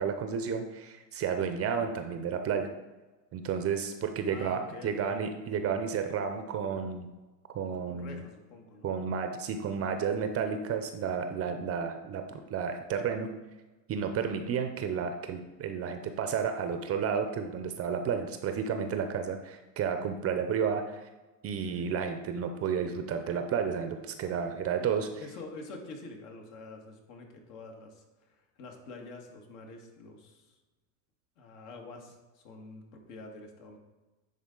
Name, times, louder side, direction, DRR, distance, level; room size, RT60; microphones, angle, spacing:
voice 1, 0.0-2.7 3.3-7.1 7.5-8.2 8.8-13.3 13.9-21.1 21.4-25.1, right 6 dB, 30° right, 7 dB, 0.5 m, -32 dB
voice 2, 4.3-5.2 7.9-8.9 18.9-19.0 21.7-21.9 24.8-30.6 31.4-33.8, left 3 dB, 65° left, 2 dB, 1.7 m, -47 dB
10.5 x 4.0 x 3.8 m, 1.2 s
supercardioid pair, 120°, 48 cm